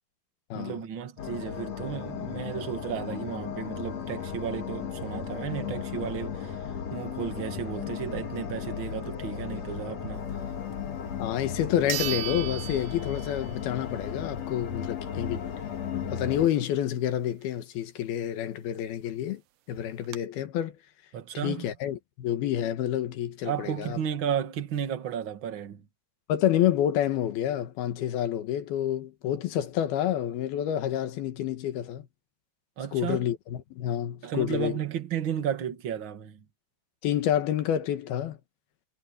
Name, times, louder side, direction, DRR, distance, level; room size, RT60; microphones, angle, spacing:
voice 1, 0.5-6.6 6.9-10.4 21.1-21.7 23.5-25.8 32.8-33.3 34.2-36.4, right 8 dB, 40° right, 2.0 m, -33 dB
sound 1, 1.2-16.5, left 7 dB, 50° left, 2.6 m, -35 dB
sound 2, 11.1-11.2 11.9-13.7 14.0-14.1 18.8-18.9 19.1-19.2 19.7-20.2, right 14 dB, 80° right, 2.8 m, -35 dB
voice 2, 11.2-15.4 15.9-19.4 19.7-20.8 21.4-24.0 26.3-32.0 32.9-34.8 37.0-38.4, left 11 dB, 75° left, 3.4 m, -28 dB
omnidirectional pair, 4.4 m